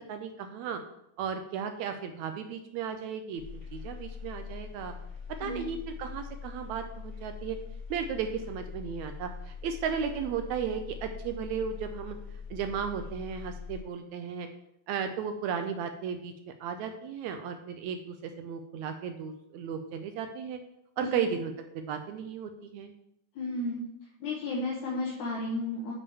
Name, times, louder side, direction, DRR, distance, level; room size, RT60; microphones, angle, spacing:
voice 1, 0.1-0.8 1.2-3.4 3.7-4.9 5.4-7.6 7.9-12.2 12.5-14.5 14.9-16.3 16.6-20.6 21.0-22.9, right 7 dB, 75° right, 7 dB, 1.8 m, -35 dB
sound 1, 3.4-13.8, left 5 dB, 25° left, 4.1 m, -43 dB
voice 2, 23.4-23.8 24.2-25.9, left 2 dB, 70° left, -3 dB, 2.5 m, -33 dB
7.0 x 5.2 x 6.8 m, 0.77 s
omnidirectional pair, 3.6 m